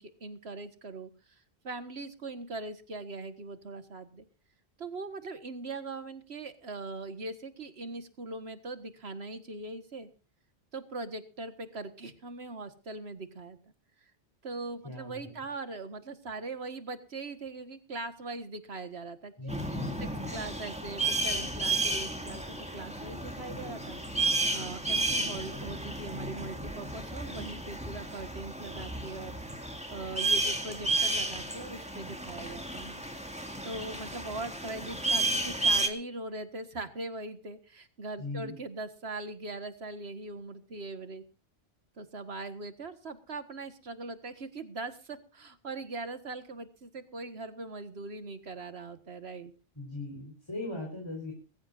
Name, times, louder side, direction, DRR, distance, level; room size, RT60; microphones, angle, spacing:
voice 1, 0.0-4.3 4.8-10.1 10.7-13.6 14.0-14.1 14.4-19.5 20.0-24.0 24.5-33.0 33.6-41.2 42.0-49.5, right 2 dB, 70° right, 10 dB, 1.9 m, -41 dB
voice 2, 14.8-15.3 19.4-20.3 38.2-38.5 49.8-51.3, left 2 dB, 25° left, 1 dB, 4.4 m, -39 dB
sound 1, 19.5-35.9, right 2 dB, 5° right, 2.2 m, -32 dB
21.5 x 14.5 x 2.6 m, 0.34 s
omnidirectional pair, 1.1 m